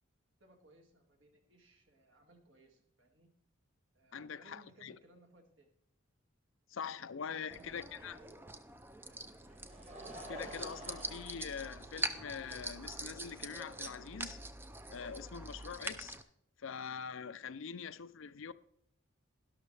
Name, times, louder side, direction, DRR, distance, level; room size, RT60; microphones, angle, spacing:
voice 1, 0.4-3.3 3.9-5.7 6.9-8.5 9.0-9.2, right 2 dB, 60° right, 2.0 m, -63 dB
voice 2, 4.1-5.0 6.7-8.2 10.3-14.4 14.9-16.2 16.6-18.5, left 6 dB, 65° left, 0.5 m, -44 dB
sound 1, 7.5-16.2, right 2 dB, 10° right, 0.4 m, -44 dB
Laughter, 9.2-12.4 13.2-13.3 14.8-14.9, right 1 dB, 30° right, 2.0 m, -50 dB
12.0 x 12.0 x 3.3 m
head